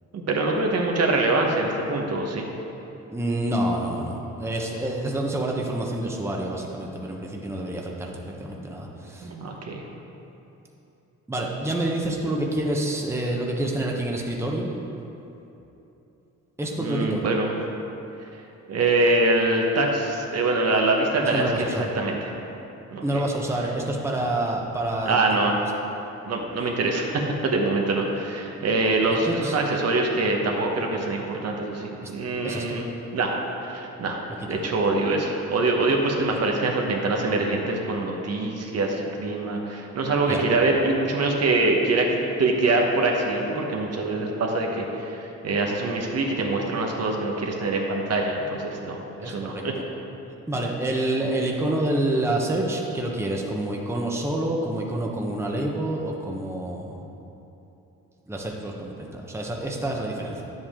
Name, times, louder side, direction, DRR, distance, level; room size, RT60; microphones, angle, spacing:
voice 1, 0.1-2.4 9.2-9.8 16.8-17.5 18.3-18.4 18.7-22.3 22.9-23.2 25.1-25.5 26.2-32.9 33.1-33.3 33.6-34.2 34.5-49.7, right 2 dB, 55° right, 1 dB, 1.2 m, -24 dB
voice 2, 3.1-9.3 11.3-14.8 16.6-17.2 21.2-21.9 23.0-25.2 29.1-29.6 32.0-32.1 32.4-32.8 34.5-34.6 35.9-36.0 40.3-40.4 49.2-49.6 50.5-57.0 58.3-60.4, right 1 dB, 10° right, -1 dB, 1.0 m, -28 dB
9.6 x 7.7 x 3.7 m, 3.0 s
cardioid pair, 90°, 30 cm